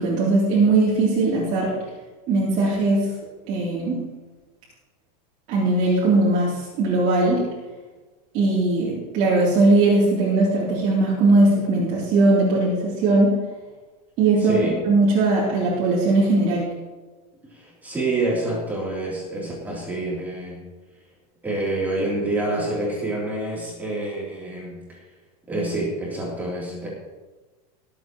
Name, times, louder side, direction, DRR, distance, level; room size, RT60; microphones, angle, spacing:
voice 1, 0.0-1.7 2.3-3.1 3.5-4.0 5.5-7.5 8.3-13.4 14.2-14.6 14.8-16.7, right 2 dB, 35° right, -7 dB, 3.2 m, -19 dB
voice 2, 14.4-14.8 17.5-20.6 21.4-25.0 25.5-26.9, right 2 dB, 10° right, -5 dB, 3.2 m, -27 dB
20.5 x 8.4 x 3.0 m, 1.3 s
supercardioid pair, 175°, 21 cm